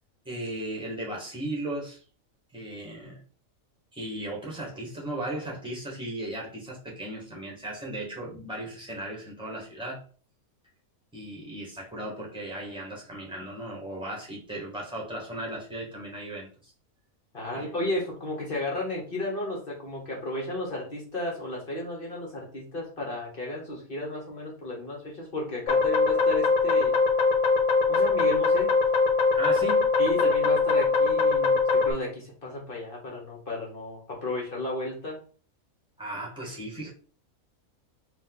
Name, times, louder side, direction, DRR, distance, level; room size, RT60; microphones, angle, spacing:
voice 1, 0.2-2.0 2.5-3.2 3.9-10.0 11.1-16.7 17.5-17.6 29.3-29.9 36.0-36.9, right 1 dB, 5° right, 1.5 m, -36 dB
voice 2, 17.3-26.9 27.9-28.7 30.0-35.2, left 1 dB, 40° left, 1.2 m, -33 dB
sound 1, 25.7-31.9, left 4 dB, 85° left, 1.2 m, -22 dB
4.0 x 2.8 x 3.7 m
omnidirectional pair, 1.4 m